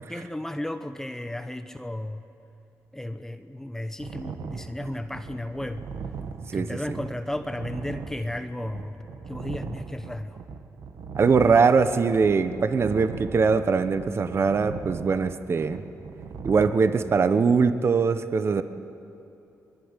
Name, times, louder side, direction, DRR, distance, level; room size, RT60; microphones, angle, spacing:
voice 1, 0.1-2.2 2.9-5.9 6.5-10.4, left 1 dB, 5° left, 8 dB, 1.0 m, -34 dB
sound 1, 4.0-16.7, right 5 dB, 70° right, 1.6 m, -39 dB
voice 2, 6.5-7.0 11.2-15.8 16.4-18.6, right 5 dB, 40° right, 10 dB, 1.1 m, -22 dB
25.0 x 22.0 x 9.9 m, 2.8 s
cardioid pair, 105°, 6 cm